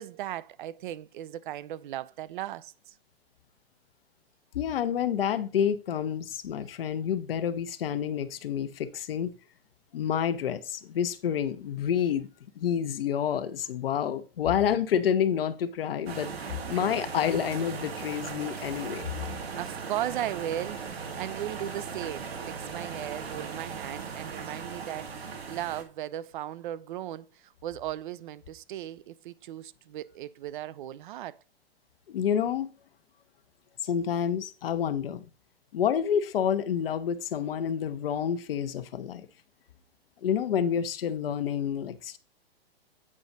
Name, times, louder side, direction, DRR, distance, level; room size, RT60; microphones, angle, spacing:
voice 1, 0.0-3.0 19.2-31.4, right 12 dB, 55° right, 0.6 m, -37 dB
voice 2, 4.5-9.3 9.9-12.3 12.6-19.1 32.1-32.7 33.8-35.2 35.7-39.3 40.2-42.2, left 8 dB, 65° left, 0.9 m, -28 dB
sound 1, 16.1-25.8, right 5 dB, 75° right, 1.9 m, -38 dB
8.7 x 5.0 x 4.0 m
hypercardioid pair, 115°, 30 cm